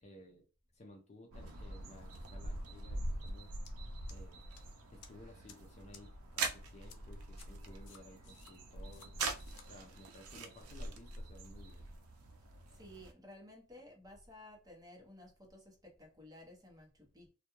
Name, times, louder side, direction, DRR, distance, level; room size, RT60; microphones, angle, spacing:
voice 1, 0.0-0.5 0.7-3.5 4.1-4.4 4.9-9.2 9.6-11.9, left 1 dB, 30° left, 0.5 m, -56 dB
sound 1, 1.3-13.1, right 3 dB, 75° right, 0.5 m, -43 dB
sound 2, 3.6-3.7 4.1-4.6 5.0-5.1 5.5-5.6 5.9-6.0 6.4-6.5 6.9-7.0 7.4-7.5 7.9-8.5 8.9-9.1 9.4-9.7, left 7 dB, 85° left, 0.5 m, -56 dB
voice 2, 12.8-17.3, left 1 dB, 15° right, 0.8 m, -55 dB
2.3 x 2.2 x 2.9 m
head